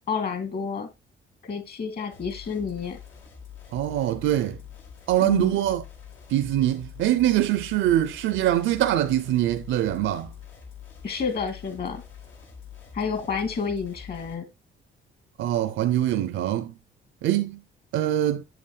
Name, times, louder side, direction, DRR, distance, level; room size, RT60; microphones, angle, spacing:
voice 1, 0.1-0.9 1.4-3.0 5.2-5.5 11.0-12.0 12.9-14.4, left 5 dB, 50° left, 2.6 m, -30 dB
sound 1, 2.1-14.3, left 7 dB, 80° left, 2.7 m, -45 dB
voice 2, 3.7-4.6 5.1-5.8 6.3-10.3 15.4-16.7 17.2-17.6 17.9-18.4, right 13 dB, 80° right, 0.6 m, -23 dB
7.8 x 7.7 x 2.4 m
cardioid pair, 90°, 20 cm